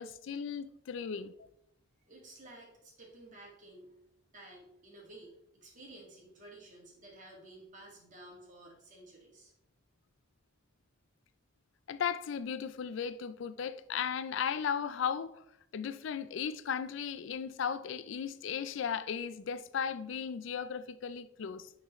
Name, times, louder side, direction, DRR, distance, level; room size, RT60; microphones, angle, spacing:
voice 1, 0.0-1.5 11.9-15.4 15.7-21.7, left 7 dB, 70° left, 0.4 m, -36 dB
voice 2, 2.0-3.9 4.3-9.5, right 1 dB, 40° right, 1.9 m, -53 dB
9.3 x 3.9 x 3.1 m
head